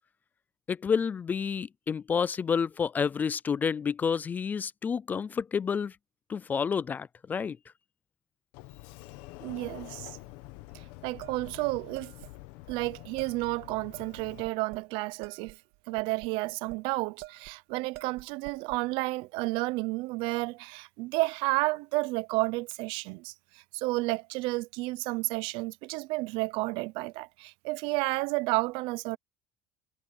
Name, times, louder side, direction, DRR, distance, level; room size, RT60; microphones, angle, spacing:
voice 1, 0.7-5.9 6.3-7.6, left 6 dB, 20° left, 0.3 m, -29 dB
Sliding door, 8.5-14.4, left 19 dB, 80° left, 1.2 m, -47 dB
voice 2, 9.4-10.2 10.7-12.1 12.7-15.6 15.9-29.2, right 23 dB, 70° right, 0.6 m, -31 dB
sound 1, 11.2-12.3 12.7-12.8 13.2-13.5 13.9-14.9 15.2-16.8 17.2-17.6 17.9-18.8, right 20 dB, 85° right, 2.3 m, -47 dB
cardioid pair, 165°, 9 cm